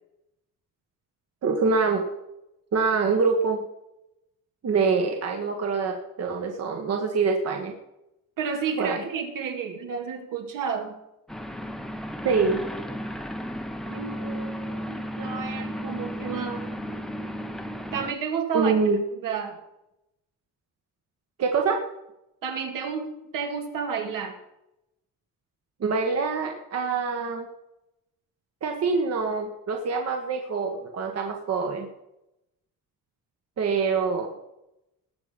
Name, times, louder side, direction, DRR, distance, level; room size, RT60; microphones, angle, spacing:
voice 1, 1.4-2.0 2.7-3.6 4.6-7.7 8.8-9.0 12.2-12.6 18.5-19.0 21.4-21.8 25.8-27.5 28.6-31.9 33.6-34.3, right 4 dB, 50° right, 2 dB, 1.6 m, -25 dB
voice 2, 8.4-11.0 13.8-16.7 17.9-18.7 19.1-19.6 22.4-24.4, right 6 dB, 70° right, 3 dB, 2.5 m, -31 dB
sound 1, 11.3-18.1, equal, ahead, 0.9 m, -34 dB
19.0 x 7.0 x 5.3 m, 0.88 s
cardioid pair, 145°, 34 cm